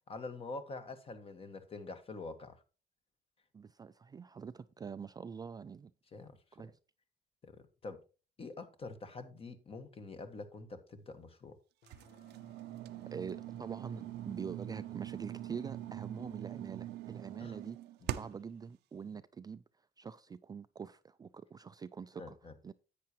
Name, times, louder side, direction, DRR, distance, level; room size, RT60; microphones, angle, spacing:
voice 1, 0.1-2.6 6.1-6.4 7.4-8.0 8.4-11.6 17.4-17.6 18.0-18.1 22.2-22.5, left 3 dB, 35° left, 1.6 m, -46 dB
voice 2, 3.5-5.9 6.5-6.8 13.1-17.8 18.2-19.6 20.0-22.4 22.6-22.7, right 6 dB, 25° right, 0.4 m, -45 dB
sound 1, 11.8-16.0, left 5 dB, 80° left, 1.6 m, -63 dB
sound 2, 11.9-18.5, right 13 dB, 80° right, 0.6 m, -43 dB
10.5 x 8.6 x 3.0 m
cardioid pair, 110°, 17 cm